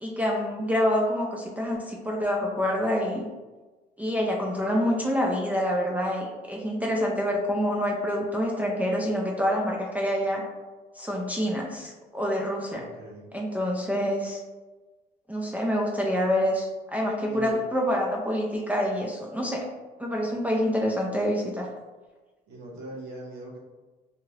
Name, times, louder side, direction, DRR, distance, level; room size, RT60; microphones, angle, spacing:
voice 1, 0.0-3.3 4.0-10.4 11.0-12.8 13.3-14.4 15.3-19.7 20.0-21.7, equal, 10° right, -1 dB, 0.4 m, -27 dB
voice 2, 12.7-13.3 17.3-17.6 20.3-20.4 22.5-23.6, right 2 dB, 90° right, -4 dB, 0.9 m, -41 dB
2.8 x 2.4 x 3.1 m, 1.2 s
cardioid pair, 110°, 17 cm